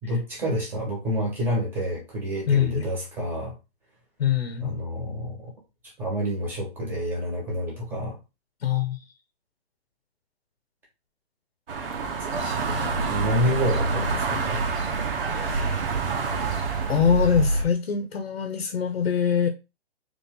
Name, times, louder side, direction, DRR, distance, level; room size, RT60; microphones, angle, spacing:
voice 1, 0.0-3.5 4.6-5.5 6.0-8.2 12.3-14.6, equal, 5° right, 1.3 m, -29 dB
voice 2, 2.5-2.9 4.2-4.8 8.6-9.0 15.2-15.8 16.9-19.5, left 7 dB, 75° left, 1.1 m, -24 dB
sound 1, 11.7-17.0, right 5 dB, 60° right, 1.1 m, -29 dB
sound 2, 12.3-17.6, right 3 dB, 90° right, 1.1 m, -28 dB
4.1 x 3.4 x 3.7 m
hypercardioid pair, 165°, 32 cm